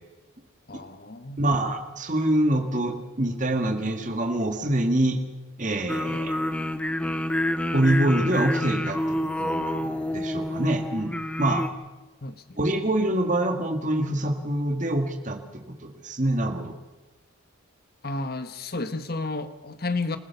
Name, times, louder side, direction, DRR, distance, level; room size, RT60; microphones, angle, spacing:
voice 1, 0.7-1.4 12.2-12.6 18.0-20.2, left 3 dB, 45° left, 10 dB, 1.2 m, -32 dB
voice 2, 1.4-5.2 5.6-6.4 7.7-11.7 12.6-16.7, right 1 dB, 35° right, 5 dB, 2.0 m, -25 dB
sound 1, 5.9-11.7, left 1 dB, 5° left, 0.9 m, -28 dB
27.0 x 15.5 x 7.0 m, 1.2 s
head